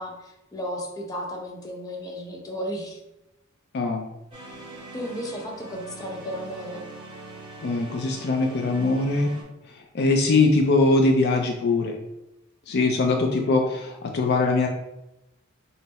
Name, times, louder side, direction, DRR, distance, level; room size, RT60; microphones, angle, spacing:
voice 1, 0.0-3.0 4.9-6.8, equal, 15° left, 0 dB, 0.7 m, -34 dB
sound 1, 4.3-9.4, right 2 dB, 25° right, 1.3 m, -42 dB
voice 2, 7.6-9.3 9.9-11.9 12.7-14.7, left 3 dB, 50° left, 2 dB, 0.4 m, -21 dB
5.4 x 2.0 x 4.0 m, 0.92 s
head